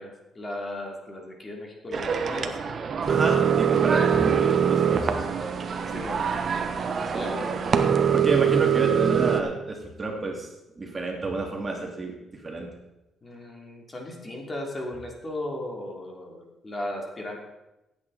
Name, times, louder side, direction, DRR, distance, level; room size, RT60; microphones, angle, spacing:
voice 1, 0.0-2.6 4.0-4.2 5.9-6.2 7.1-7.7 13.2-17.4, left 1 dB, 30° left, 0 dB, 3.1 m, -36 dB
sound 1, 1.9-9.4, right 7 dB, 50° right, 1.1 m, -23 dB
voice 2, 3.1-5.3 8.1-10.5 10.8-12.7, right 2 dB, 30° right, 1 dB, 2.5 m, -30 dB
16.0 x 8.6 x 4.2 m, 0.95 s
cardioid pair, 90°, 0 cm